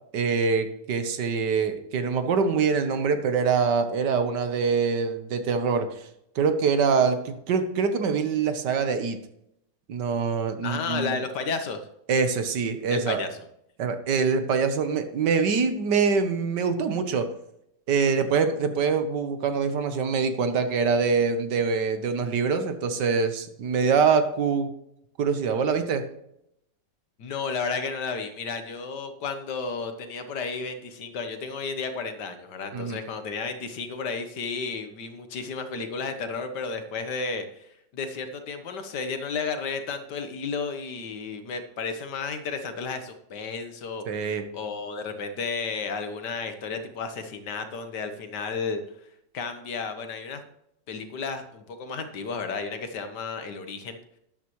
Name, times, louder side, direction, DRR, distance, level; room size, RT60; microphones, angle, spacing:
voice 1, 0.1-6.1 6.3-9.2 9.9-11.1 12.1-13.2 13.8-17.3 17.9-24.7 25.2-26.0 32.7-33.0 44.1-44.4, right 5 dB, 70° right, 8 dB, 1.6 m, -24 dB
voice 2, 10.6-11.8 12.9-13.4 27.2-44.0 44.5-48.8 49.3-50.4 50.9-54.0, left 4 dB, 70° left, 8 dB, 1.7 m, -32 dB
12.5 x 11.0 x 3.1 m, 0.77 s
omnidirectional pair, 1.9 m